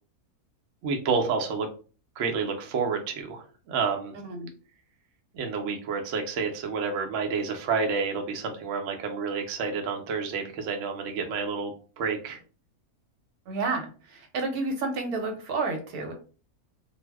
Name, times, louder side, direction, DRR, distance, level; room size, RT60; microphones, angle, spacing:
voice 1, 0.8-1.7 2.2-4.1 5.3-12.4, right 5 dB, 65° right, 3 dB, 0.8 m, -29 dB
voice 2, 13.5-16.1, right 3 dB, 80° right, 4 dB, 1.2 m, -30 dB
2.5 x 2.0 x 3.3 m, 0.39 s
omnidirectional pair, 1.6 m